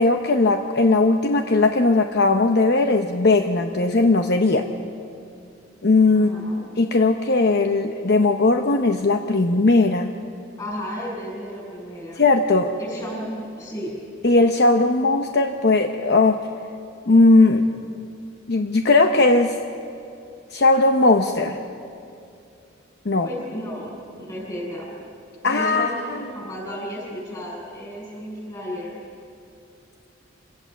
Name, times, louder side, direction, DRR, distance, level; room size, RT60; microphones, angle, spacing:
voice 1, 0.0-4.6 5.8-6.3 6.8-10.1 12.2-12.7 14.2-16.4 17.1-17.7 18.5-19.5 20.5-21.6 23.0-23.3 25.4-26.2, left 3 dB, 55° left, 5 dB, 0.8 m, -18 dB
voice 2, 6.1-6.6 10.6-12.3 12.8-13.9 23.2-24.9 25.4-29.0, equal, 20° left, -3 dB, 7.7 m, -33 dB
26.5 x 17.5 x 7.2 m, 2.5 s
head